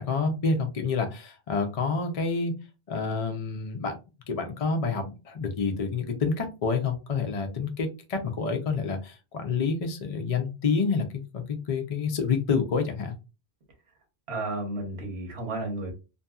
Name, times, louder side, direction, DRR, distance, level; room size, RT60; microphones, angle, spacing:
voice 1, 0.0-2.6 2.9-4.0 4.3-13.1, left 4 dB, 45° left, 0.6 m, -28 dB
voice 2, 14.3-15.9, right 2 dB, 85° right, 1.2 m, -32 dB
2.7 x 2.6 x 2.3 m
omnidirectional pair, 1.1 m